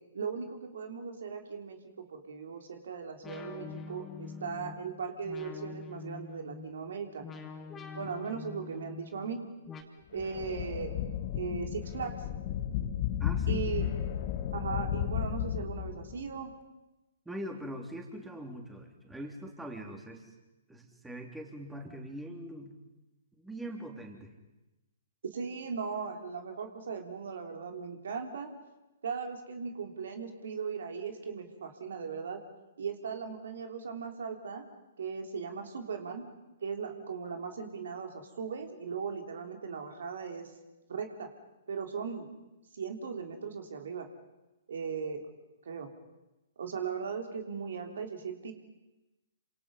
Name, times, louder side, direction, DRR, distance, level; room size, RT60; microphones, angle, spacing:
voice 1, 0.1-7.3 7.9-9.4 10.1-10.9 11.4-12.1 13.5-13.9 14.5-16.5 25.2-28.5 29.0-32.4 32.8-34.6 35.0-36.3 36.6-40.5 40.9-41.3 41.7-42.3 42.7-44.1 44.7-45.2 45.7-45.9 46.6-48.5, right 6 dB, 65° right, 5 dB, 3.3 m, -38 dB
sound 1, 3.2-9.8, left 5 dB, 15° left, 2.7 m, -45 dB
sound 2, 10.1-16.3, left 10 dB, 45° left, 2.0 m, -33 dB
voice 2, 13.2-13.6 17.3-20.3 20.7-22.7 23.4-24.3, right 1 dB, 5° right, 2 dB, 3.6 m, -42 dB
28.0 x 26.5 x 5.6 m, 1.0 s
figure-of-eight pair, 125°, 0 cm